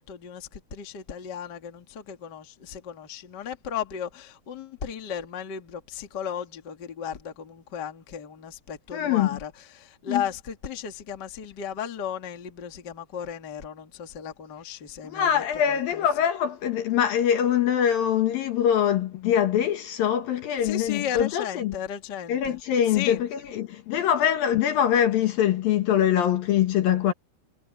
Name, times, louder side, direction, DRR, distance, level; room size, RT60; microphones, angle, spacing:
voice 1, 0.0-16.1 20.6-22.6 22.9-23.2, left 8 dB, 35° left, 1.9 m, -35 dB
voice 2, 8.9-9.4 10.1-10.2 15.0-21.8 22.3-27.1, left 9 dB, 65° left, 2.9 m, -23 dB
omnidirectional pair, 4.7 m